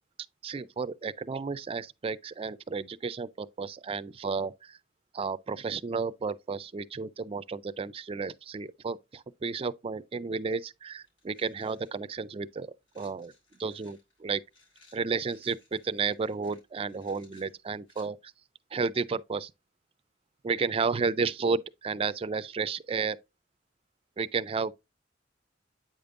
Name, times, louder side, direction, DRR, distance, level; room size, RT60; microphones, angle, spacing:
voice 1, 0.4-4.8 5.1-12.7 12.9-13.3 13.6-14.4 14.9-18.3 18.7-19.5 20.4-23.2 24.2-24.7, right 5 dB, 30° right, 0.4 m, -32 dB
sound 1, 10.9-12.0 12.9-18.1, left 3 dB, 85° left, 4.3 m, -62 dB
8.6 x 5.2 x 2.5 m
head